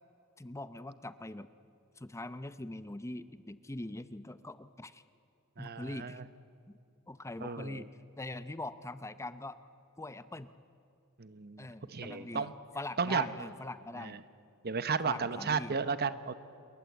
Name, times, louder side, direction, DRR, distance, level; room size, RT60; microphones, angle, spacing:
voice 1, 0.4-1.5 2.0-5.0 5.6-6.2 7.1-7.9 8.2-9.6 10.0-10.5 11.6-14.2 15.0-15.8, left 2 dB, 15° left, 13 dB, 0.7 m, -42 dB
voice 2, 5.6-6.2 7.4-7.9 11.2-12.5 13.0-13.3 14.0-14.2 14.6-16.3, right 5 dB, 45° right, 13 dB, 1.0 m, -34 dB
28.0 x 22.0 x 8.3 m, 2.7 s
head